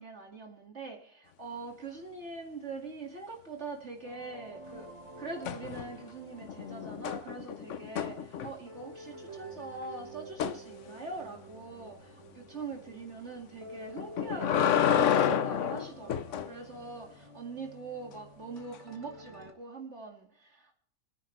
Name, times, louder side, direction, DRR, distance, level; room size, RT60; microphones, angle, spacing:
voice 1, 0.0-4.9 5.2-20.7, right 3 dB, 50° right, 1 dB, 2.5 m, -43 dB
sound 1, 4.0-19.5, right 2 dB, 25° right, 1.4 m, -49 dB
sound 2, 5.4-6.1 6.4-8.8 10.4-10.6 14.0-16.5 18.7-18.8, left 9 dB, 60° left, 1.1 m, -29 dB
29.0 x 10.5 x 3.2 m, 0.64 s
omnidirectional pair, 1.6 m